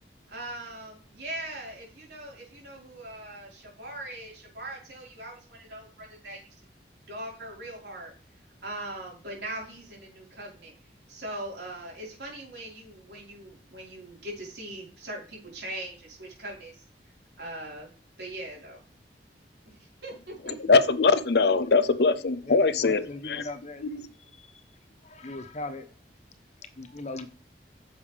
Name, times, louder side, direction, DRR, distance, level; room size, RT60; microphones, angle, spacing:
voice 1, 0.3-6.4 7.1-8.1 8.6-10.7 11.1-16.7 17.4-17.9 18.2-18.8 20.0-20.6, right 1 dB, 70° right, 4.5 m, -40 dB
voice 2, 20.4-23.4 23.8-24.1, left 4 dB, 65° left, 0.6 m, -22 dB
voice 3, 22.5-24.0 24.4-24.5 25.0-25.9 26.8-27.3, left 2 dB, 40° left, 0.9 m, -38 dB
10.0 x 7.2 x 3.4 m
head